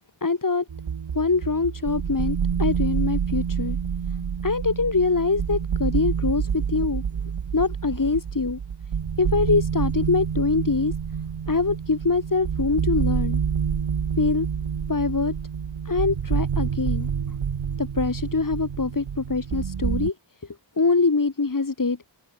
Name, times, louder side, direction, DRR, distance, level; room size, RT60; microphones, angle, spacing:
voice 1, 0.2-0.6 1.1-3.8 4.4-7.0 7.5-8.6 9.2-10.9 11.5-13.4 14.2-14.5 14.9-15.3 15.8-17.1 17.8-20.1 20.8-22.0, left 4 dB, 40° left, 5.0 m, -24 dB
sound 1, 0.7-20.1, right 7 dB, 85° right, 5.3 m, -28 dB
open air
cardioid pair, 65°, 47 cm